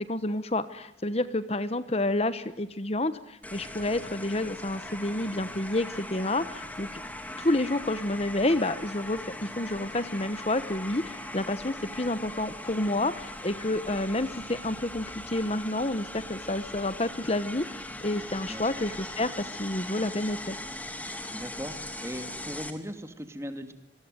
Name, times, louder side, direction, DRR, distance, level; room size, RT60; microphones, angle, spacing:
voice 1, 0.1-7.0 7.4-20.6, left 1 dB, 35° left, 13 dB, 1.1 m, -29 dB
sound 1, 3.4-22.7, left 1 dB, 10° left, 2.7 m, -40 dB
voice 2, 18.5-18.8 21.3-23.7, equal, 15° right, 9 dB, 2.5 m, -39 dB
27.0 x 22.5 x 9.3 m, 0.85 s
head